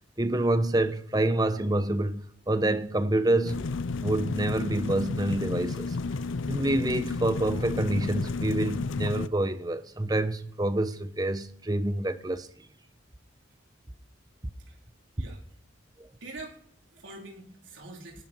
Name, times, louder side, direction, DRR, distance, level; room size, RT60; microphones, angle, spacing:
voice 1, 0.2-3.7 4.0-6.0 6.5-12.5 16.0-16.1, right 1 dB, 20° right, 0.8 m, -27 dB
sound 1, 3.4-9.3, left 3 dB, 75° left, 0.5 m, -32 dB
voice 2, 16.2-18.2, right 2 dB, 70° right, 4.0 m, -45 dB
18.5 x 11.5 x 4.6 m
head